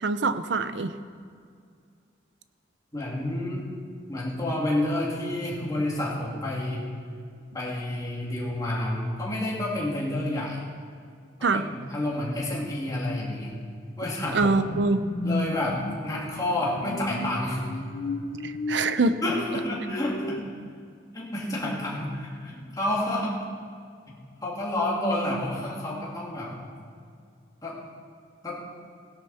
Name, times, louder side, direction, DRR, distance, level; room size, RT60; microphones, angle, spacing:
voice 1, 0.0-0.9 11.4-11.6 14.3-15.1 18.4-19.2, right 3 dB, 70° right, 12 dB, 0.6 m, -24 dB
voice 2, 2.9-3.7 4.1-6.8 7.5-10.6 11.5-13.5 14.0-14.6 15.2-17.6 19.2-20.4 21.1-23.4 24.4-26.5 27.6-27.8 28.4-28.6, left 1 dB, 20° left, -5 dB, 2.7 m, -29 dB
sound 1, 14.4-20.4, left 2 dB, 55° left, 0.6 m, -35 dB
17.0 x 12.0 x 4.3 m, 2.2 s
head